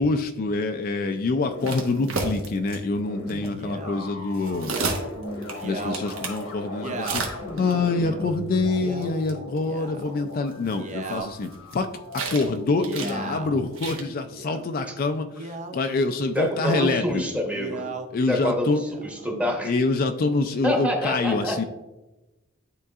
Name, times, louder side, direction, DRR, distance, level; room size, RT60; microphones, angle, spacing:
voice 1, 0.0-4.8 5.6-11.9 12.1-17.2 18.1-18.8 19.3-21.6, left 3 dB, 45° left, 6 dB, 0.4 m, -26 dB
sound 1, 1.4-13.4, left 1 dB, 85° left, 1.2 m, -37 dB
sound 2, 1.6-2.8 3.3-3.5 4.3-6.4 7.0-7.7 9.0-9.1 9.3-9.4 9.6-9.7 10.5-11.7 12.1-12.6 12.8-13.1 13.7-14.0, right 3 dB, 75° right, 1.2 m, -31 dB
Male speech man speaking, 3.6-4.0 4.6-5.0 5.5-6.0 6.7-7.3 8.0-8.3 8.7-9.1 9.6-10.1 10.6-11.3 12.6-13.6 14.2-14.7 15.3-15.8 16.4-16.9 17.4-18.1 18.7-19.3, right 3 dB, 35° right, 0.5 m, -36 dB
voice 2, 16.3-17.8 18.3-19.7 20.6-21.6, equal, 5° right, 1 dB, 1.0 m, -27 dB
11.0 x 3.8 x 2.4 m, 1.0 s
head